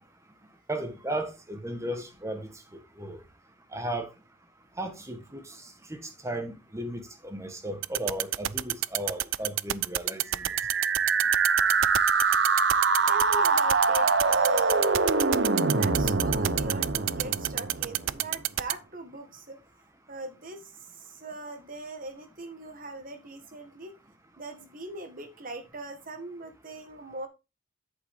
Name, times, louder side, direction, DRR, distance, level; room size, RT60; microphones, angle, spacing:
voice 1, 0.7-2.5 3.0-3.2 3.7-4.1 4.8-5.4 5.9-10.2, right 1 dB, 15° right, 1.4 m, -35 dB
sound 1, 7.8-18.7, right 14 dB, 80° right, 0.4 m, -27 dB
voice 2, 9.0-9.3 11.8-11.9 13.1-14.9 15.7-19.8 20.1-24.0 24.4-27.3, right 2 dB, 45° right, 1.7 m, -40 dB
sound 2, 10.3-18.2, right 4 dB, 60° right, 0.9 m, -24 dB
8.2 x 7.3 x 3.6 m
head